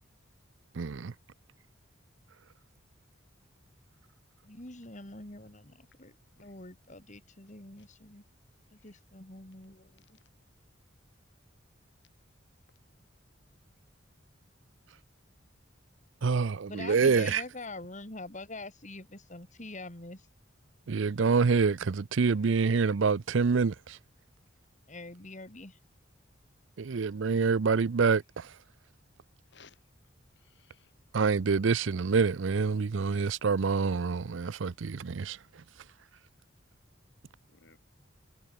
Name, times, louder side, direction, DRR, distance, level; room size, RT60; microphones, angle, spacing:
voice 1, 0.7-1.1 16.2-17.4 20.9-24.0 26.8-28.5 31.1-35.4, right 5 dB, 70° right, 0.5 m, -26 dB
voice 2, 4.4-6.2 6.4-8.2 8.7-10.0 16.6-20.3 24.9-25.8, left 2 dB, 40° left, 3.4 m, -45 dB
voice 3, 30.4-30.9 37.5-37.8, left 5 dB, 60° left, 5.1 m, -59 dB
head